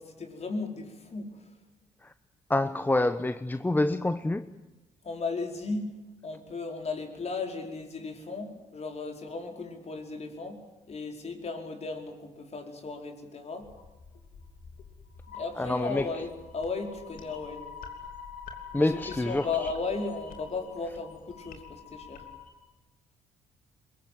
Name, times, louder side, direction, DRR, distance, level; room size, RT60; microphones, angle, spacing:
voice 1, 0.0-1.4 5.0-5.9 6.2-13.7 15.3-17.7 18.7-22.2, left 4 dB, 45° left, 5.0 m, -36 dB
voice 2, 2.5-4.5 15.6-16.1 18.7-19.5, left 2 dB, 15° left, 1.0 m, -27 dB
sound 1, 13.6-22.5, left 6 dB, 70° left, 3.3 m, -46 dB
22.5 x 21.5 x 9.3 m
hypercardioid pair, 55°, 15 cm